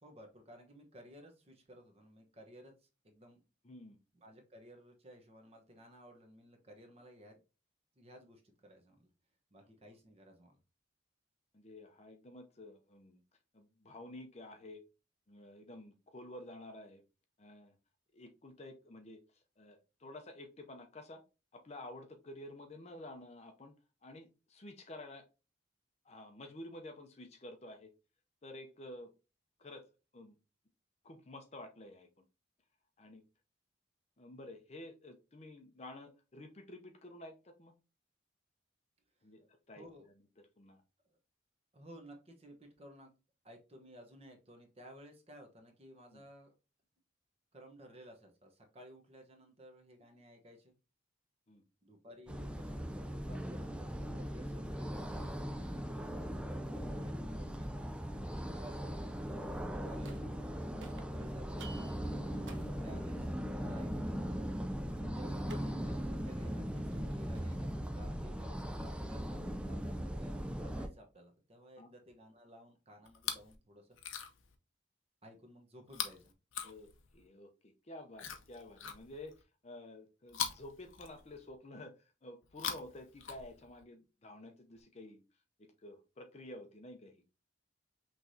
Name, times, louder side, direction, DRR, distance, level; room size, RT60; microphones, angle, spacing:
voice 1, 0.0-3.4 4.2-7.4 8.0-9.1 9.5-10.6 39.8-40.1 41.0-41.1 41.7-43.1 43.4-46.5 47.5-50.7 51.8-55.8 56.9-57.7 58.5-59.6 59.9-60.6 61.0-61.8 62.6-64.1 64.9-73.9 75.2-76.3, equal, 30° right, 3 dB, 1.0 m, -56 dB
voice 2, 3.6-4.0 11.5-13.2 13.5-14.8 15.3-17.0 17.4-17.8 18.1-21.2 21.5-23.7 24.0-25.3 26.0-27.9 28.4-29.1 29.6-29.9 30.1-30.3 31.0-32.1 33.0-33.2 34.2-37.7 39.2-39.8 40.6-40.8 46.1-46.2 51.5-51.6 59.8-60.0 71.8-71.9 76.6-85.2 85.6-87.2, left 1 dB, 35° left, 5 dB, 0.6 m, -51 dB
sound 1, 52.3-70.9, equal, 5° right, 0.3 m, -39 dB
sound 2, 60.0-60.5 60.8-67.8, right 2 dB, 65° right, 0.8 m, -58 dB
Chewing mastication, 73.1-73.6 73.9-74.5 75.9-77.3 78.1-79.4 80.3-81.6 82.4-83.8 84.8-84.9, left 8 dB, 85° left, 0.8 m, -42 dB
5.7 x 3.2 x 2.7 m, 0.30 s
head